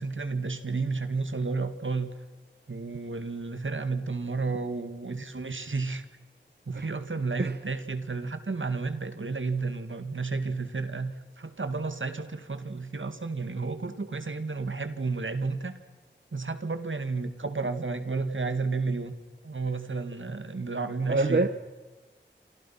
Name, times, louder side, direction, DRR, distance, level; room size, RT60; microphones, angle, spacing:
voice 1, 0.0-2.1 2.7-6.0 6.7-15.7 16.3-19.1 19.4-21.5, right 4 dB, 85° right, 2.0 m, -32 dB
voice 2, 21.1-21.5, right 2 dB, 55° right, 1.0 m, -25 dB
28.0 x 26.0 x 5.9 m
wide cardioid pair, 50°, 20 cm